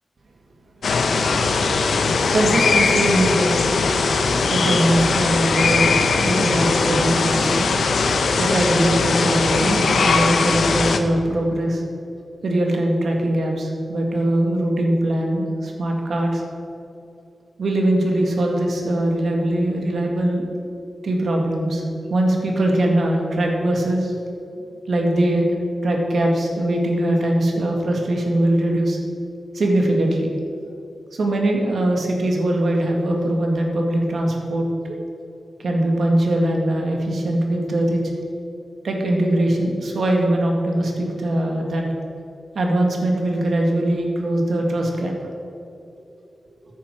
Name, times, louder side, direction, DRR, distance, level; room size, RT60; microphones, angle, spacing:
sound 1, 0.8-11.0, left 4 dB, 80° left, 0.9 m, -20 dB
voice 1, 2.3-3.6 4.5-6.0 6.2-7.7 8.4-11.8 12.4-16.4 17.6-20.5 21.0-21.8 22.1-24.1 24.6-25.5 25.8-29.0 29.5-30.3 31.1-34.9 35.6-38.0 38.8-41.8 42.5-45.1, right 1 dB, 70° right, 1 dB, 2.2 m, -21 dB
14.0 x 9.5 x 4.8 m, 2.7 s
wide cardioid pair, 110°, 0 cm